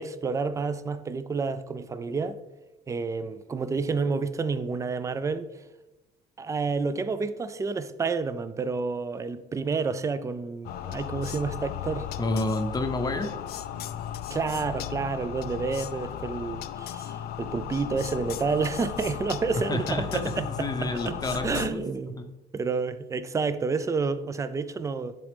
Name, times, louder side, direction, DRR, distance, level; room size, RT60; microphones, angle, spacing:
voice 1, 0.0-2.4 2.9-5.5 6.4-12.1 14.3-21.2 21.4-22.2 22.5-25.2, right 4 dB, 20° right, 0.4 m, -29 dB
sound 1, 10.6-21.7, left 11 dB, 65° left, 0.4 m, -36 dB
voice 2, 12.2-13.4 19.6-21.8, left 2 dB, 25° left, 0.7 m, -29 dB
10.5 x 4.0 x 3.4 m
cardioid pair, 110°, 17 cm